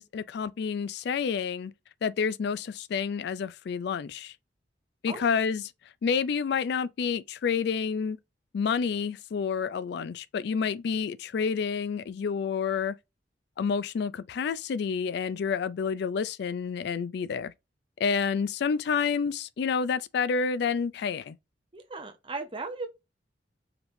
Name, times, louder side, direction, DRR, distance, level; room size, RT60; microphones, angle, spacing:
voice 1, 0.0-1.7 2.0-4.3 5.0-5.6 6.0-8.2 8.5-13.0 13.6-17.5 18.0-21.4, left 6 dB, 65° left, 0.3 m, -29 dB
voice 2, 21.7-22.9, right 3 dB, 30° right, 1.0 m, -37 dB
5.0 x 3.1 x 2.6 m
head